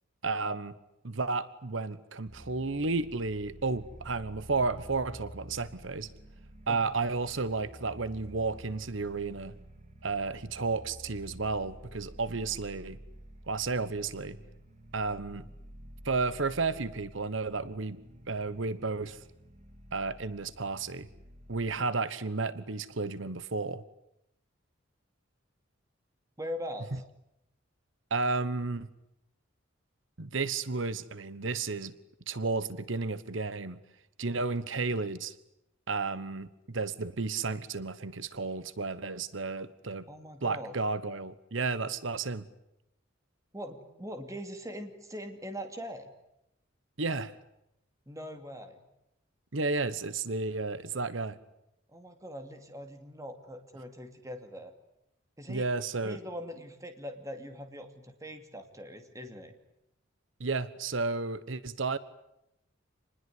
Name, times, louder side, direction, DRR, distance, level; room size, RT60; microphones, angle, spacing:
voice 1, 0.2-0.7 1.0-6.1 6.7-9.5 10.0-13.0 13.5-14.4 14.9-15.5 16.0-18.0 18.3-19.2 19.9-21.1 21.5-23.8 28.1-28.9 30.2-31.9 32.3-33.8 34.2-35.3 35.9-40.1 40.4-42.4 47.0-47.3 49.5-51.4 55.5-56.2 60.4-62.0, right 3 dB, 70° right, 15 dB, 1.2 m, -32 dB
sound 1, 2.3-21.8, right 1 dB, 35° right, 2.8 m, -50 dB
voice 2, 26.4-27.0 40.1-40.7 43.5-46.1 48.1-48.8 51.9-54.7 55.4-55.7 56.0-59.5, equal, 15° right, 6 dB, 2.7 m, -42 dB
27.5 x 20.5 x 9.7 m, 0.84 s
head